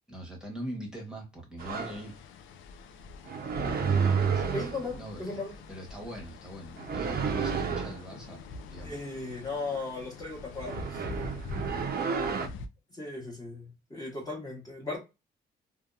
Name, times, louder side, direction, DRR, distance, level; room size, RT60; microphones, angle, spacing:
voice 1, 0.1-2.3 4.3-5.4 5.7-8.4 8.7-9.0, right 1 dB, 5° right, 1.0 m, -42 dB
sound 1, 1.6-12.7, left 3 dB, 85° left, 0.4 m, -44 dB
sound 2, 1.6-2.0 3.3-4.9 6.8-8.0 10.6-12.5, right 6 dB, 50° right, 0.6 m, -30 dB
voice 2, 4.5-5.5 8.8-11.0 12.9-15.0, left 3 dB, 20° left, 0.9 m, -37 dB
2.7 x 2.2 x 2.3 m
cardioid pair, 90°, 20 cm